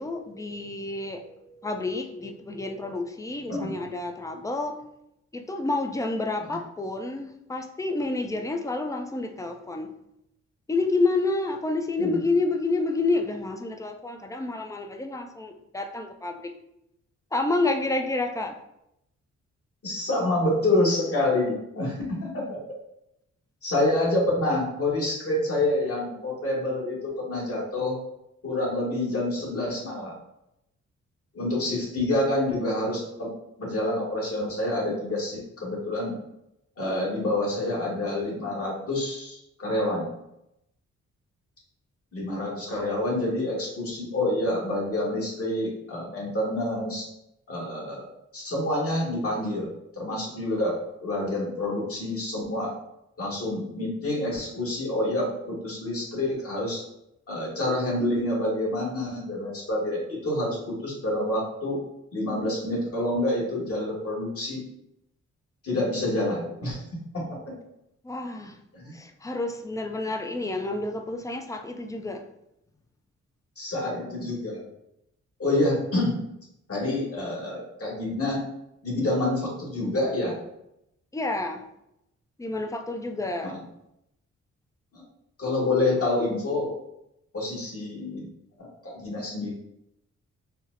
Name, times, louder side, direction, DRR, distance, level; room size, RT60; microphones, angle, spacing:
voice 1, 0.0-4.8 5.3-9.9 10.7-16.5 17.3-18.6 68.0-68.6 68.9-72.2 81.1-81.6 82.4-83.6, left 2 dB, 10° left, 5 dB, 0.4 m, -29 dB
voice 2, 19.8-22.6 23.6-28.0 28.4-30.1 31.3-33.3 33.6-36.1 36.8-40.1 42.1-47.1 47.5-49.7 49.9-52.7 53.2-56.8 57.3-61.8 62.1-64.6 65.6-66.8 67.1-67.3 68.7-69.0 73.6-74.6 75.4-76.2 76.7-78.4 78.8-80.3 83.4-83.5 84.9-85.0 85.4-86.7 87.3-88.3 88.6-89.5, left 1 dB, 50° left, -3 dB, 1.4 m, -27 dB
4.2 x 2.0 x 2.5 m, 0.83 s
supercardioid pair, 50°, 31 cm